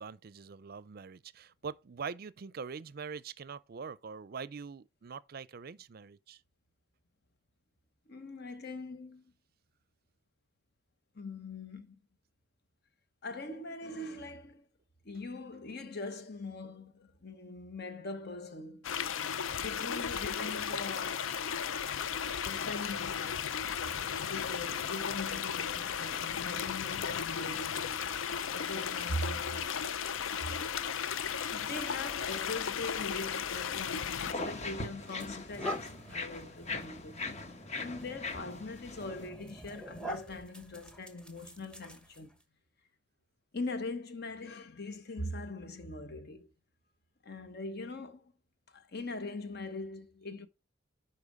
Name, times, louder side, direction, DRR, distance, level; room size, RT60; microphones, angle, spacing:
voice 1, 0.0-6.4, right 5 dB, 50° right, 0.5 m, -43 dB
voice 2, 8.1-9.3 11.1-12.0 13.2-14.6 15.0-19.0 19.5-21.4 22.4-29.8 30.4-30.5 31.5-37.2 37.7-42.4 43.5-46.5 47.2-48.3 48.7-50.5, left 2 dB, 55° left, 1.1 m, -42 dB
sound 1, 18.8-34.3, left 7 dB, 85° left, 0.5 m, -35 dB
sound 2, 34.2-39.3, left 3 dB, 35° left, 1.1 m, -40 dB
sound 3, 35.0-42.4, equal, 5° left, 1.2 m, -45 dB
11.0 x 4.3 x 4.8 m
head